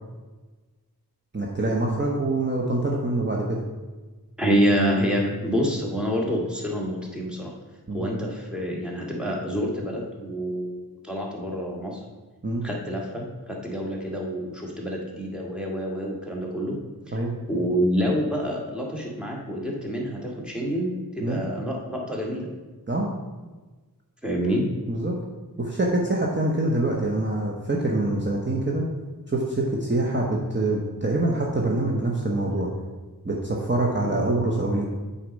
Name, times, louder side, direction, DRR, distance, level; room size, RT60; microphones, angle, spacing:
voice 1, 1.3-3.6 7.9-8.1 12.4-12.7 17.1-17.3 21.2-21.4 22.9-23.1 24.9-25.2 25.6-28.9 29.3-32.7 33.2-34.9, right 2 dB, 30° right, -2 dB, 1.0 m, -25 dB
voice 2, 4.4-7.5 7.9-12.0 12.6-13.3 13.6-16.8 17.5-22.5 24.2-24.7 34.0-34.1, equal, ahead, -2 dB, 1.7 m, -27 dB
8.1 x 4.3 x 5.2 m, 1.3 s
wide cardioid pair, 50°, 38 cm